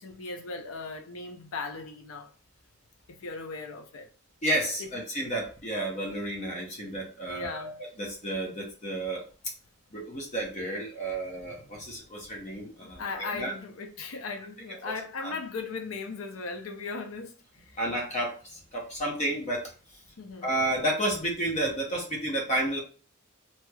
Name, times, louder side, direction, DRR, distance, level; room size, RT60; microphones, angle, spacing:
voice 1, 0.0-2.3 3.1-4.1 4.8-5.0 7.3-7.8 12.8-17.4 17.7-17.9 20.2-20.5, left 4 dB, 75° left, 0.6 m, -38 dB
voice 2, 4.4-9.2 9.9-13.5 14.8-14.9 15.2-15.3 17.8-19.7 20.4-22.8, right 1 dB, 35° left, 0.8 m, -31 dB
3.1 x 2.9 x 2.2 m
head